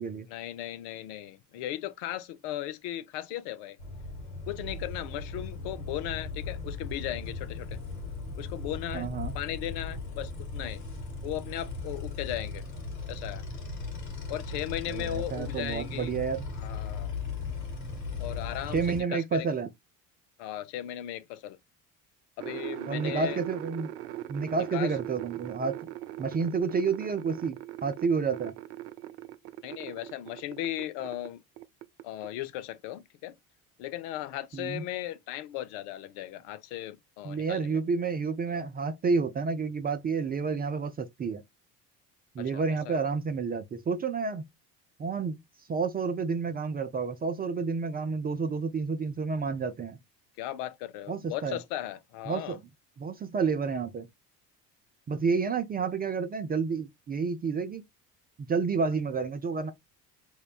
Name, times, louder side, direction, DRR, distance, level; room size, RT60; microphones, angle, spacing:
voice 1, 0.3-3.8 4.5-7.8 8.4-9.1 9.3-10.8 11.2-12.6 13.1-13.4 14.3-16.1 16.6-17.1 18.2-19.5 20.4-21.6 22.4-23.4 24.7-24.9 29.6-31.4 32.0-33.4 33.8-37.8 38.5-38.7 42.4-43.0 50.4-52.6, left 13 dB, 55° left, 0.5 m, -37 dB
sound 1, 3.8-19.0, left 4 dB, 80° left, 1.1 m, -37 dB
voice 2, 8.9-9.3 14.9-16.5 18.7-19.7 22.9-23.9 24.3-25.7 26.2-28.5 34.5-34.8 37.2-41.4 42.4-44.4 45.0-45.4 45.7-50.0 51.1-51.6 52.3-52.6 53.0-54.1 55.1-57.8 58.5-59.7, right 5 dB, 20° right, 0.4 m, -30 dB
sound 2, 22.4-31.3 31.6-32.3, right 14 dB, 75° right, 0.5 m, -40 dB
5.3 x 2.1 x 2.3 m
figure-of-eight pair, 55°, 50 cm